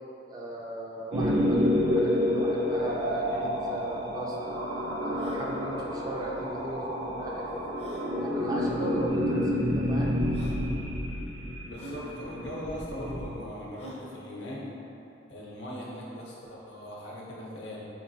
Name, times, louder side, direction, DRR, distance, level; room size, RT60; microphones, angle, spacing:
voice 1, 0.3-4.6 5.0-7.5 8.2-10.2, right 1 dB, 20° right, -3 dB, 0.4 m, -37 dB
sound 1, 1.1-13.2, left 1 dB, 75° right, 0.7 m, -29 dB
sound 2, 3.6-3.7 3.8-3.9 4.5-4.6 5.1-5.4 6.8-6.9 7.7-8.1 9.1-9.2 9.9-10.0 10.3-10.6 11.7-12.0 13.8-14.1, equal, 35° left, 0.6 m, -44 dB
voice 2, 11.6-14.8 15.3-17.8, equal, 70° left, -5 dB, 0.8 m, -40 dB
4.7 x 2.9 x 2.7 m, 2.8 s
head